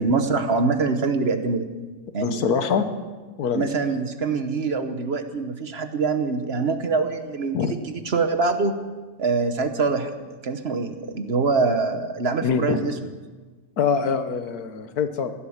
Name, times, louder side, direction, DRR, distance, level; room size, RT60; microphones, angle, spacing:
voice 1, 0.0-1.7 2.1-2.4 3.5-8.8 9.2-13.1, right 4 dB, 45° right, 8 dB, 1.1 m, -24 dB
voice 2, 2.2-2.9 3.4-3.7 7.5-7.8 12.4-12.8 13.8-15.3, left 6 dB, 90° left, 9 dB, 1.6 m, -24 dB
15.5 x 11.5 x 7.3 m, 1.3 s
omnidirectional pair, 1.6 m